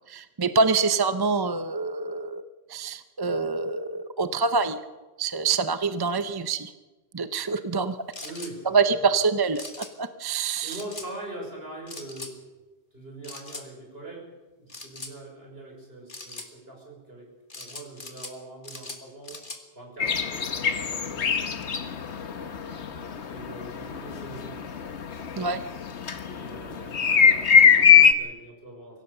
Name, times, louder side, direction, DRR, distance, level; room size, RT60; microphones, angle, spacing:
voice 1, 0.1-2.4 2.7-4.8 5.2-6.7 7.1-8.0 8.7-10.8 25.4-25.6, right 4 dB, 25° right, 11 dB, 0.7 m, -25 dB
sound 1, 8.1-8.5 9.6-9.9 10.7-11.1 11.9-12.3 13.2-13.7 14.7-15.1 16.1-16.5 17.5-18.4 18.6-19.6, left 3 dB, 50° left, 2.3 m, -40 dB
voice 2, 8.1-9.2 10.6-12.3 12.9-19.5 19.7-21.3 23.2-24.6 26.3-29.0, right 2 dB, 65° right, 0 dB, 6.3 m, -42 dB
sound 2, 20.0-28.1, left 7 dB, 80° left, 1.4 m, -21 dB
24.0 x 16.5 x 6.7 m, 1.2 s
omnidirectional pair, 1.1 m